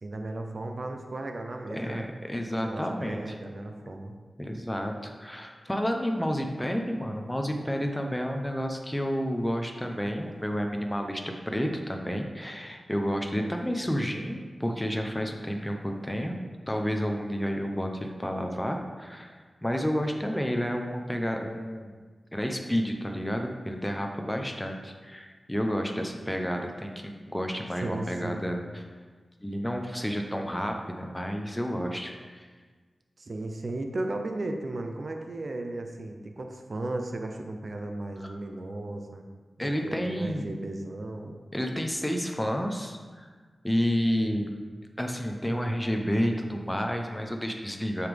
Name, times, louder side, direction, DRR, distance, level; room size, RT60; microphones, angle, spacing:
voice 1, 0.0-2.1 2.5-4.1 27.8-28.5 33.2-39.2 39.6-41.4, right 2 dB, 60° right, 4 dB, 0.7 m, -35 dB
voice 2, 1.7-3.2 4.4-16.4 16.7-22.0 22.3-28.8 29.4-32.5 38.2-38.3 39.6-40.4 41.5-43.3 43.6-44.5 45.0-48.1, equal, 10° left, 3 dB, 0.7 m, -30 dB
7.1 x 6.5 x 3.5 m, 1.5 s
wide cardioid pair, 70°, 0 cm